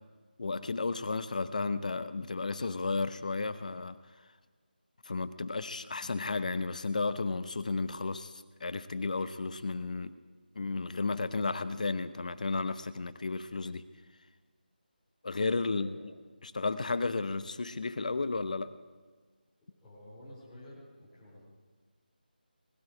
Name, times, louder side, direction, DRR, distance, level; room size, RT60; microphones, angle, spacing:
voice 1, 0.4-4.0 5.1-10.1 10.6-13.8 15.2-15.9 16.4-18.7, left 3 dB, 50° left, 14 dB, 0.8 m, -33 dB
voice 2, 15.7-16.1 16.4-16.5 19.8-21.4, left 1 dB, 10° left, -9 dB, 4.2 m, -51 dB
20.5 x 12.5 x 4.9 m, 1.5 s
figure-of-eight pair, 160°, 5 cm